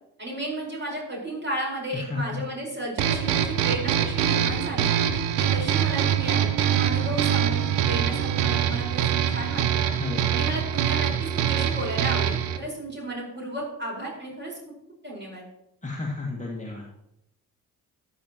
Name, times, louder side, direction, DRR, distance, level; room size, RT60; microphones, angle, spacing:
voice 1, 0.2-4.9 5.3-9.9 10.3-14.6 15.0-15.4, right 1 dB, 25° right, -2 dB, 4.9 m, -33 dB
voice 2, 1.9-2.4 9.8-10.4 15.8-16.8, left 3 dB, 15° left, -3 dB, 2.0 m, -32 dB
sound 1, 3.0-12.6, right 9 dB, 55° right, 0.9 m, -24 dB
13.5 x 10.5 x 3.0 m, 0.84 s
figure-of-eight pair, 40°, 47 cm